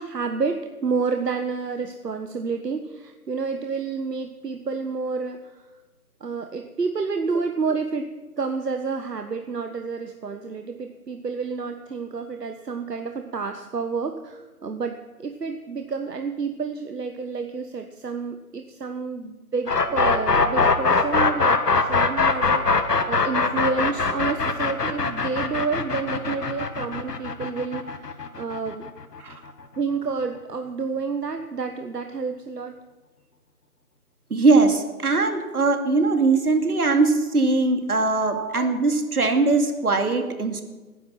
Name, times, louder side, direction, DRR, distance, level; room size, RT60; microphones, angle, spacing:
voice 1, 0.0-5.6 6.2-8.1 8.4-28.8 29.8-32.8 38.3-38.5, right 4 dB, 85° right, 6 dB, 1.3 m, -29 dB
sound 1, 19.7-29.5, left 4 dB, 80° left, 1.7 m, -22 dB
voice 2, 34.3-40.6, right 3 dB, 70° right, 6 dB, 2.4 m, -21 dB
19.0 x 11.0 x 5.9 m, 1.2 s
figure-of-eight pair, 165°, 47 cm